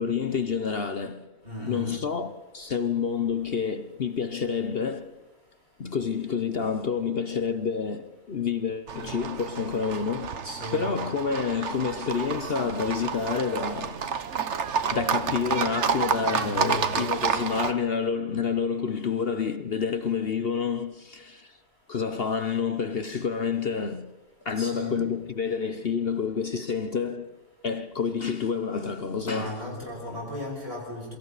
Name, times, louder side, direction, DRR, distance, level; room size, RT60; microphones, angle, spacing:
voice 1, 0.0-1.3 1.7-5.1 5.8-10.4 10.7-14.0 14.9-21.5 21.9-24.2 24.4-27.4 27.6-29.6, left 6 dB, 50° left, 0.7 m, -28 dB
voice 2, 1.4-2.0 10.4-10.8 16.2-16.9 24.6-25.0 29.2-31.2, left 1 dB, 30° right, 6.6 m, -36 dB
Livestock farm animals working animals, 8.9-17.7, right 6 dB, 45° right, 1.1 m, -30 dB
27.5 x 23.5 x 4.1 m
omnidirectional pair, 1.9 m